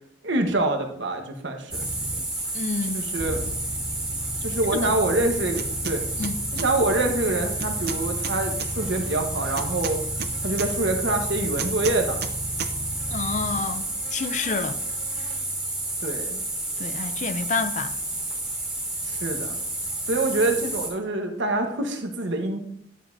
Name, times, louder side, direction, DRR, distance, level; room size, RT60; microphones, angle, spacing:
voice 1, 0.2-1.9 2.9-3.5 4.4-6.0 6.5-10.0 10.4-12.2 16.0-16.4 19.0-19.6 20.1-22.6, right 2 dB, 70° right, 1.2 m, -26 dB
sound 1, 1.7-20.9, right 1 dB, 5° right, 1.8 m, -30 dB
voice 2, 2.5-3.0 4.7-4.9 6.2-6.4 13.1-14.8 16.8-17.9, left 4 dB, 40° left, 0.4 m, -29 dB
sound 2, 5.5-6.0 6.2-6.7 7.6-8.7 9.6-10.7 11.6-12.3 12.6-12.7, right 6 dB, 55° right, 0.5 m, -33 dB
11.0 x 7.0 x 2.7 m
head